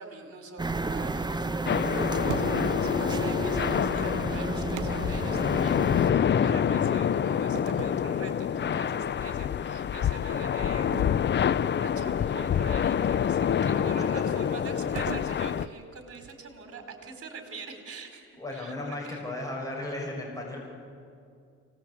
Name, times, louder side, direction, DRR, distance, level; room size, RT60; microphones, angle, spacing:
voice 1, 0.0-10.9 11.4-19.2, right 3 dB, 50° right, 5 dB, 4.3 m, -44 dB
sound 1, 0.6-6.1, right 2 dB, 15° right, 1.0 m, -32 dB
sound 2, 1.7-15.7, left 8 dB, 35° left, 0.5 m, -27 dB
sound 3, 2.3-2.9 4.7-6.0 7.5-8.9 9.4-9.6 10.9-12.4 15.0-16.6, right 13 dB, 80° right, 0.6 m, -42 dB
voice 2, 18.4-20.7, left 2 dB, 10° left, -2 dB, 6.1 m, -35 dB
25.5 x 19.5 x 8.3 m, 2.4 s
cardioid pair, 90°, 30 cm